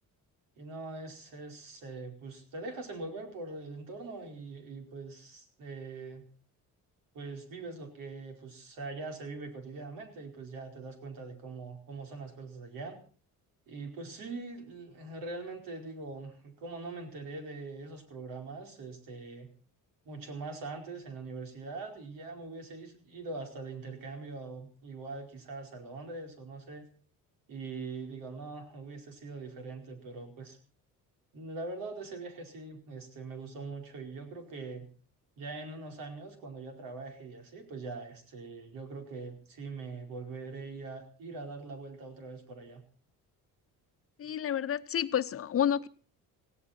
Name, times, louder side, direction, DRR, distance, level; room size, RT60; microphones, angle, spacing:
voice 1, 0.6-6.2 7.1-13.0 13.7-19.5 20.0-26.9 27.5-30.6 31.3-34.9 35.4-42.8, right 3 dB, 85° right, 4.8 m, -42 dB
voice 2, 44.2-45.9, left 9 dB, 45° left, 0.8 m, -29 dB
18.0 x 16.5 x 4.4 m
cardioid pair, 140°, 33 cm